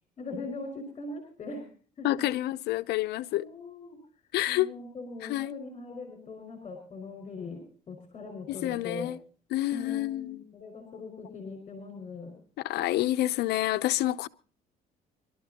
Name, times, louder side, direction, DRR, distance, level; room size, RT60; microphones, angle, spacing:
voice 1, 0.2-1.7 2.0-2.2 3.0-4.0 4.5-9.1 9.7-12.3, left 3 dB, 35° left, 5.1 m, -41 dB
voice 2, 2.0-3.5 4.3-4.7 5.3-5.5 8.5-9.2 9.5-10.4 12.6-14.3, left 15 dB, 75° left, 0.7 m, -28 dB
27.0 x 12.5 x 2.9 m
cardioid pair, 110°, 17 cm